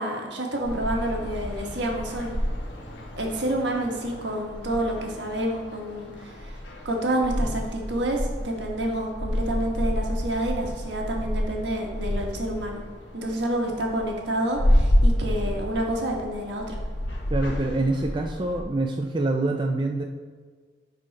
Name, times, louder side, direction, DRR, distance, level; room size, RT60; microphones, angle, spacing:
voice 1, 0.0-2.3 3.2-6.6 6.8-12.8 13.1-16.8, right 1 dB, 70° right, 1 dB, 1.4 m, -28 dB
sound 1, 0.6-18.6, equal, 75° left, 1.2 m, -29 dB
voice 2, 17.3-20.0, right 2 dB, 25° right, 2 dB, 0.4 m, -25 dB
10.0 x 4.1 x 4.1 m, 1.6 s
head